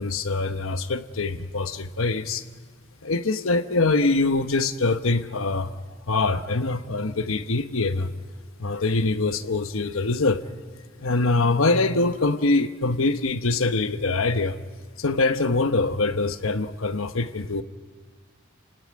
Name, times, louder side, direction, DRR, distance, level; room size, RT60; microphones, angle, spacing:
voice 1, 0.0-2.4 3.0-5.7 6.1-8.1 8.6-10.4 11.0-14.6 15.0-17.6, left 3 dB, 85° left, 9 dB, 1.1 m, -24 dB
28.5 x 18.0 x 9.6 m, 1.5 s
head